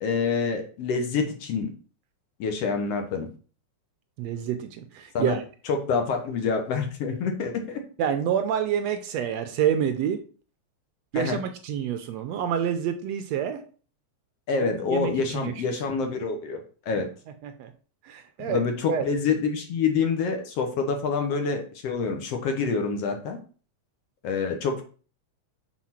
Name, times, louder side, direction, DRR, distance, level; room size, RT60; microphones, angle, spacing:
voice 1, 0.0-1.7 2.4-3.3 5.1-5.4 5.7-7.8 11.1-11.4 14.5-16.6 16.9-17.1 18.4-23.4 24.2-24.8, left 5 dB, 65° left, 5 dB, 1.9 m, -27 dB
voice 2, 4.2-5.4 8.0-10.2 11.1-13.6 14.6-15.8 17.4-17.7 18.0-19.1, right 9 dB, 75° right, 8 dB, 1.7 m, -28 dB
6.2 x 4.6 x 5.8 m, 0.39 s
omnidirectional pair, 3.4 m